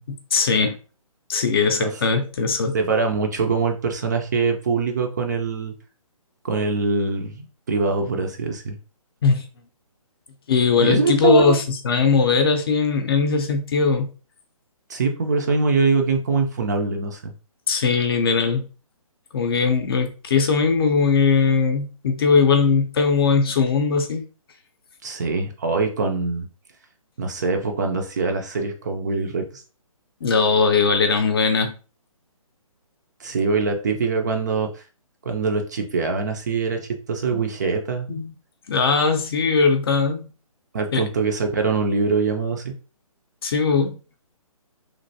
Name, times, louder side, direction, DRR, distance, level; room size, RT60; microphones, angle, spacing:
voice 1, 0.1-0.8 1.3-2.8 9.2-9.4 10.5-14.1 17.7-18.7 19.3-24.2 30.2-31.7 37.3-37.4 38.1-38.3 38.7-40.2 40.9-41.0 43.4-44.0, left 5 dB, 40° left, 0.5 m, -20 dB
voice 2, 1.8-2.2 2.7-5.7 6.4-8.8 10.8-11.6 14.9-17.3 25.0-26.5 27.2-29.6 33.2-34.8 35.3-38.1 40.7-42.7, right 4 dB, 30° right, 0.4 m, -23 dB
3.1 x 2.5 x 2.6 m
hypercardioid pair, 155°, 18 cm